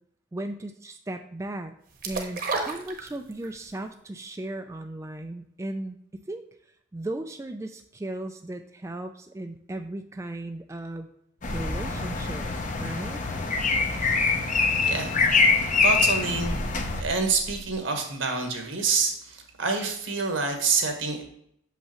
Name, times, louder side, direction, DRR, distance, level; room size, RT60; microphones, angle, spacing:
voice 1, 0.3-1.7 2.1-6.4 6.9-11.1 11.5-12.5 12.8-13.2, right 1 dB, 15° right, 6 dB, 0.3 m, -36 dB
sound 1, 2.0-3.6 3.9-4.0, right 3 dB, 45° right, 1.0 m, -31 dB
sound 2, 11.4-17.0, left 4 dB, 40° left, 0.7 m, -24 dB
sound 3, 11.4-13.1 13.3-13.5 13.7-14.2 14.7-17.8, equal, 5° left, 1.0 m, -39 dB
voice 2, 14.8-15.2 15.8-16.5 17.0-21.2, right 4 dB, 80° right, 3 dB, 1.3 m, -27 dB
6.8 x 5.5 x 3.0 m, 0.70 s
head